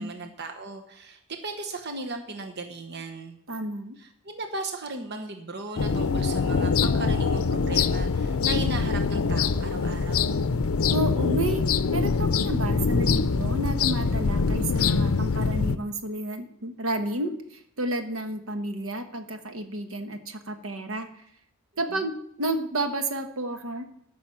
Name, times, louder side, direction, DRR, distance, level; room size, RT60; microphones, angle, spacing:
voice 1, 0.0-3.4 4.0-10.4 21.9-22.1, right 3 dB, 50° right, 4 dB, 1.1 m, -36 dB
voice 2, 3.5-4.0 10.9-11.6 11.9-21.1 21.8-23.8, right 1 dB, 70° right, 7 dB, 1.2 m, -31 dB
sound 1, 5.8-15.8, left 4 dB, 75° left, 0.6 m, -24 dB
13.0 x 6.2 x 7.6 m, 0.71 s
head